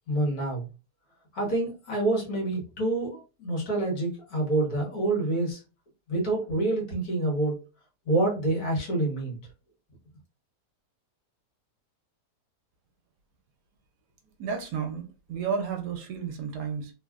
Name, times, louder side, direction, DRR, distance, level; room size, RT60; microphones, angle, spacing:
voice 1, 0.1-0.7 1.3-5.6 6.1-7.6 8.1-9.4, right 2 dB, 60° left, 1.6 m, -27 dB
voice 2, 14.4-16.9, right 6 dB, 75° right, 1.1 m, -32 dB
3.2 x 2.4 x 2.3 m
omnidirectional pair, 1.8 m